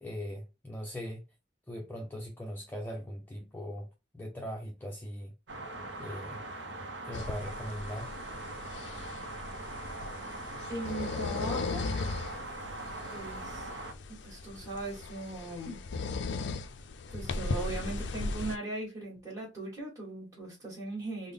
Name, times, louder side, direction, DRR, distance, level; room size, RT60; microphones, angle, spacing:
voice 1, 0.0-1.2 1.7-3.9 4.1-5.3 6.0-6.4 7.0-8.1, equal, 10° left, 0.5 m, -40 dB
sound 1, 5.5-13.9, right 2 dB, 70° right, 0.7 m, -41 dB
sound 2, 7.1-18.6, left 3 dB, 70° left, 0.4 m, -38 dB
voice 2, 10.7-11.9 13.1-13.7 14.2-15.8 17.1-21.3, right 2 dB, 15° right, 1.4 m, -39 dB
3.6 x 2.0 x 3.4 m
head